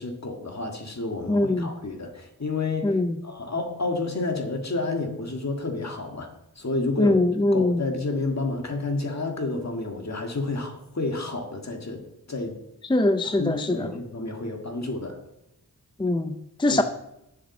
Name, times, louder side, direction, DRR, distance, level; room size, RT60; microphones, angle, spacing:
voice 1, 0.0-6.3 6.6-12.0 12.3-12.5 13.2-15.2 16.7-16.8, left 3 dB, 45° left, 1.8 m, -30 dB
voice 2, 1.3-1.7 2.8-3.2 7.0-7.8 12.9-13.9 16.0-16.8, left 2 dB, 15° left, 0.5 m, -22 dB
7.3 x 7.1 x 7.3 m
wide cardioid pair, 90°, 36 cm